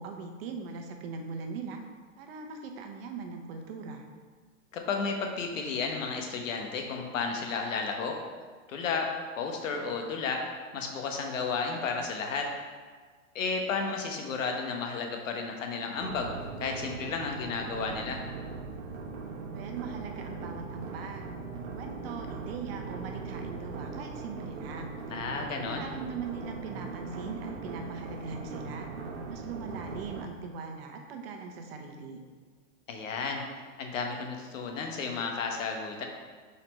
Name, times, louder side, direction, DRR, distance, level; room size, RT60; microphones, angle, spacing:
voice 1, 0.0-1.8 2.2-4.1 19.5-21.3 21.8-25.0 25.5-28.9 29.3-32.2, right 5 dB, 50° right, 4 dB, 0.9 m, -40 dB
voice 2, 4.7-8.1 8.7-9.1 9.4-10.4 10.7-12.5 13.3-16.3 16.6-18.2 25.1-25.9 32.9-33.4 33.8-36.0, left 4 dB, 75° left, 2 dB, 1.2 m, -32 dB
sound 1, 15.9-30.3, right 4 dB, 85° right, 0.9 m, -40 dB
4.4 x 4.3 x 5.2 m, 1.5 s
hypercardioid pair, 140°, 39 cm